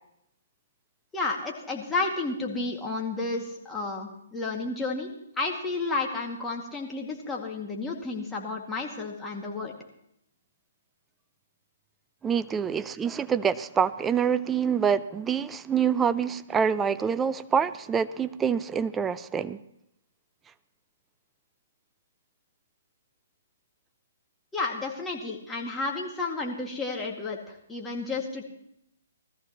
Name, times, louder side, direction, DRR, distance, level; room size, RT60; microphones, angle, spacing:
voice 1, 1.1-5.1 5.4-9.7 24.5-28.4, left 3 dB, 10° left, -1 dB, 2.1 m, -31 dB
voice 2, 12.2-19.6, right 7 dB, 15° right, 14 dB, 0.4 m, -26 dB
20.0 x 14.0 x 3.0 m, 0.77 s
hypercardioid pair, 135°, 0 cm